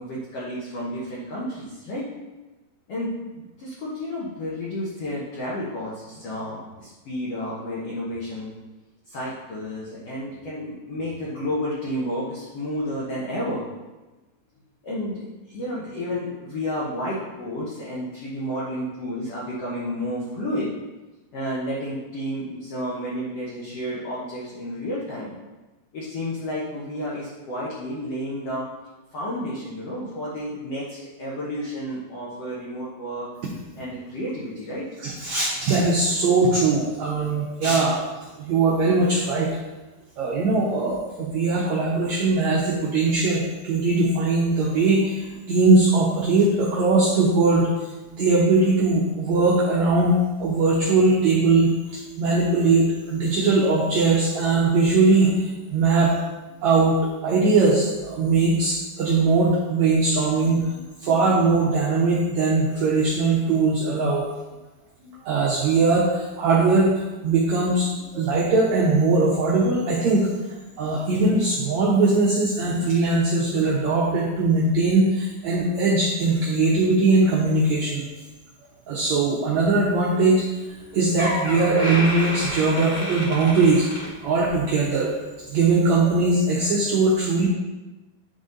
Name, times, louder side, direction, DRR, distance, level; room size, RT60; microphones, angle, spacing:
voice 1, 0.0-2.1 2.9-8.5 9.0-13.6 14.8-20.7 21.3-25.3 25.9-28.6 29.1-33.3 33.8-34.8, equal, 70° left, -6 dB, 1.5 m, -31 dB
voice 2, 35.0-38.0 38.4-39.5 40.2-56.1 56.6-60.8 61.0-64.2 65.2-78.0 78.9-80.4 80.9-83.9 84.2-85.1 85.5-87.5, right 3 dB, 90° right, -4 dB, 1.6 m, -20 dB
Door, 80.7-80.8 81.2-84.7 85.0-85.3 86.0-86.1, left 1 dB, 35° left, 1.8 m, -30 dB
9.6 x 3.9 x 3.9 m, 1.1 s
omnidirectional pair, 4.5 m